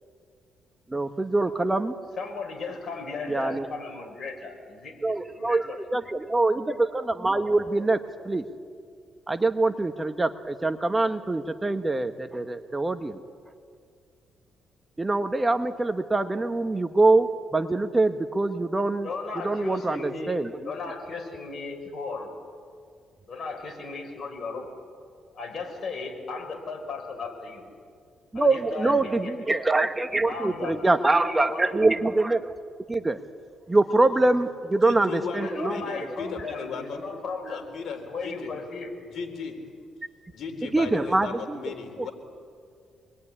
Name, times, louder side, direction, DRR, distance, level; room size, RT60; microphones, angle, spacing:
voice 1, 0.9-1.9 3.3-3.7 5.0-8.4 9.3-13.2 15.0-19.1 19.4-20.5 28.3-32.5 32.9-33.2 33.7-35.8 40.7-41.6, right 2 dB, 15° right, 8 dB, 1.1 m, -24 dB
voice 2, 2.2-5.8 19.0-22.3 23.3-24.7 25.3-27.7 28.3-29.3 30.2-31.8 35.3-37.6 38.1-38.9, left 4 dB, 45° left, 2 dB, 6.4 m, -36 dB
voice 3, 34.7-37.0 37.5-38.5 39.1-39.6 40.3-42.1, left 5 dB, 65° left, 4 dB, 4.3 m, -36 dB
26.5 x 21.0 x 9.9 m, 2.2 s
cardioid pair, 90°, 0 cm